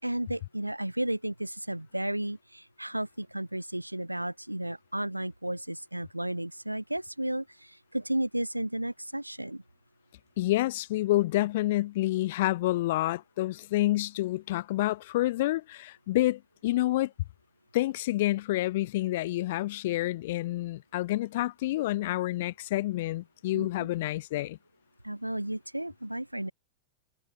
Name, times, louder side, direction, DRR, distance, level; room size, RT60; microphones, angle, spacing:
voice 1, 0.0-9.6 23.5-23.9 25.0-26.5, right 1 dB, 85° right, 3.7 m, -33 dB
voice 2, 10.4-17.1 17.7-24.6, left 16 dB, 55° left, 2.8 m, -28 dB
figure-of-eight pair, 90°, 0 cm